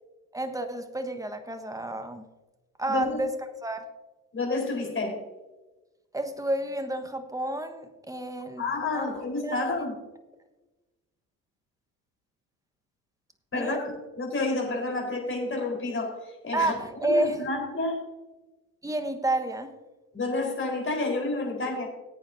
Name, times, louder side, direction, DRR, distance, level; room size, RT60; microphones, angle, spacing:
voice 1, 0.3-2.2 2.8-3.3 3.6-3.8 6.1-8.6 8.9-9.2 9.4-9.6 13.5-13.8 16.5-17.3 18.8-19.7, right 1 dB, 10° right, 8 dB, 1.3 m, -30 dB
voice 2, 2.9-3.2 4.3-5.2 8.6-9.9 13.5-18.0 20.1-21.9, left 3 dB, 30° left, 1 dB, 4.3 m, -30 dB
19.0 x 8.6 x 2.7 m, 1.1 s
hypercardioid pair, 65°, 44 cm